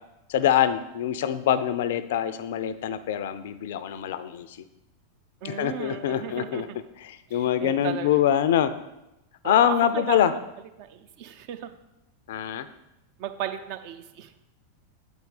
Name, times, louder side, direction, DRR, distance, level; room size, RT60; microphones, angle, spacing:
voice 1, 0.3-4.6 5.4-6.7 7.0-8.7 9.4-10.3 12.3-12.7, left 10 dB, 55° left, 13 dB, 0.4 m, -24 dB
voice 2, 5.4-6.6 7.3-8.1 9.4-10.4 10.8-11.7 13.2-14.3, right 9 dB, 45° right, 8 dB, 0.6 m, -35 dB
8.1 x 4.5 x 5.0 m, 0.91 s
figure-of-eight pair, 90°, 0 cm